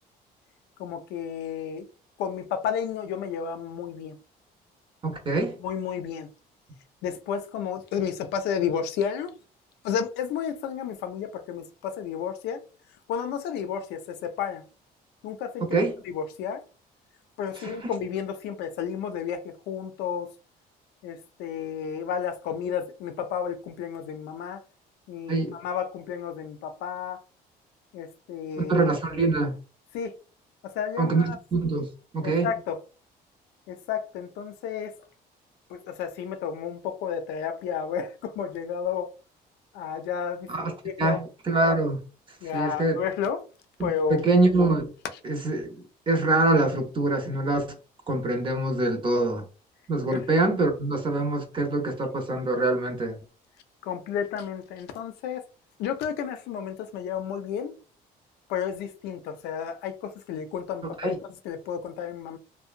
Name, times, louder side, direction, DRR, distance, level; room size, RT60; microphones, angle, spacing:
voice 1, 0.8-1.9 2.2-4.2 5.6-6.3 7.0-9.3 9.8-12.6 13.1-14.6 15.2-16.6 17.4-20.3 21.0-24.6 25.1-27.2 27.9-28.9 29.9-30.1 30.6-31.4 32.2-32.8 33.7-34.9 35.7-39.1 39.7-41.2 42.4-43.4 43.8-44.2 50.1-50.2 53.8-55.4 55.8-57.7 58.5-61.2 61.4-62.4, left 7 dB, 85° left, 0.5 m, -32 dB
voice 2, 5.0-5.6 15.7-15.9 17.6-17.9 25.3-25.6 28.6-29.6 31.0-32.5 40.5-40.7 41.0-42.0 42.5-43.0 43.8-44.9 45.2-47.8 48.1-49.4 49.9-53.2 61.0-61.2, right 2 dB, 30° right, 0.7 m, -25 dB
2.7 x 2.1 x 2.5 m
cardioid pair, 110°, 17 cm